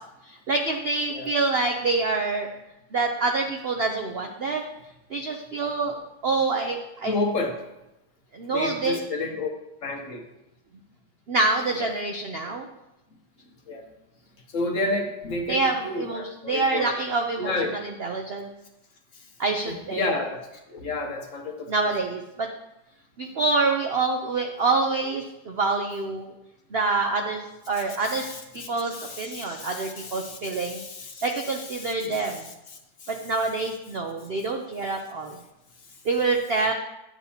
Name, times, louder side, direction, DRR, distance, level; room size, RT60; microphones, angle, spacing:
voice 1, 0.2-2.5 2.9-4.6 5.1-6.0 6.2-7.2 8.3-9.0 11.3-12.7 15.5-18.5 19.4-20.1 21.7-22.5 23.2-26.3 26.7-28.3 28.5-30.8 31.2-32.5 33.1-35.4 36.0-36.7, right 3 dB, 70° right, 3 dB, 0.5 m, -26 dB
voice 2, 7.1-7.6 8.5-9.5 9.8-10.2 11.8-11.9 13.7-13.8 14.5-16.9 17.4-17.8 19.7-21.7 28.0-31.3 31.8-33.1, left 2 dB, 55° left, 3 dB, 1.1 m, -31 dB
9.8 x 8.4 x 2.8 m, 0.93 s
omnidirectional pair, 1.9 m